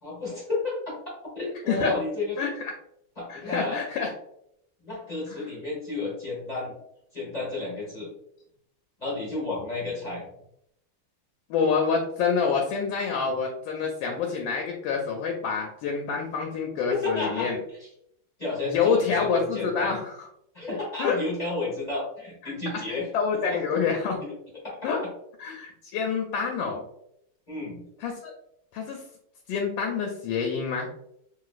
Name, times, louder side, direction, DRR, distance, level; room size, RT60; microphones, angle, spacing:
voice 1, 0.0-1.0 1.3-2.4 3.2-3.8 4.8-6.7 7.1-8.1 9.0-10.3 16.9-17.5 18.4-19.9 20.5-23.1 23.4-23.6 24.2-24.3 24.6-24.9 27.5-27.8, left 3 dB, 30° left, -6 dB, 0.7 m, -31 dB
voice 2, 2.4-2.8 3.3-4.1 5.3-5.5 11.5-17.6 18.6-20.3 21.0-21.2 22.4-24.2 24.8-25.0 25.4-26.8 28.0-28.3 28.7-29.0 29.5-30.9, left 5 dB, 75° left, 2 dB, 1.2 m, -27 dB
3.0 x 2.9 x 2.4 m, 0.74 s
omnidirectional pair, 2.3 m